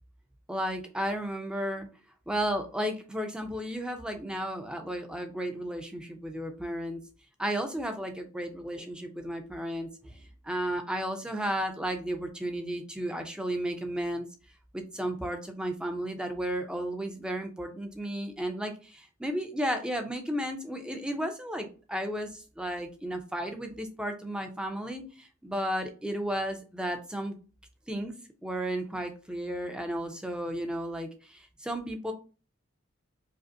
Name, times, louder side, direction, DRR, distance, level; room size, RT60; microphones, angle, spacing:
voice 1, 0.5-1.9 2.3-7.0 7.4-14.3 14.7-27.4 27.9-28.1 28.4-32.1, right 1 dB, 5° right, 5 dB, 0.5 m, -33 dB
4.9 x 2.0 x 2.6 m, 0.35 s
head